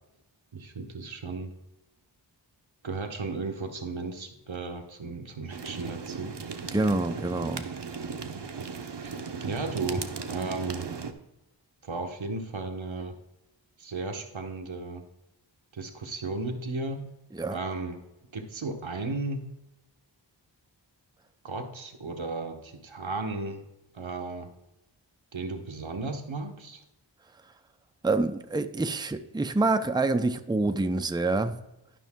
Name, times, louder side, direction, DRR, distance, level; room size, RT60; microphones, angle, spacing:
voice 1, 0.5-1.5 2.8-6.7 8.2-8.5 9.0-10.9 11.8-13.1 13.8-15.0 15.7-17.0 17.5-18.0 18.3-19.4 21.4-23.6 23.9-24.5 25.3-26.8, right 3 dB, 85° right, 1.2 m, -35 dB
sound 1, 5.5-11.1, right 5 dB, 65° right, 0.9 m, -37 dB
voice 2, 6.7-7.7 17.3-17.6 28.0-31.6, right 2 dB, 10° right, 0.5 m, -26 dB
12.0 x 5.5 x 3.6 m
wide cardioid pair, 40°, 45 cm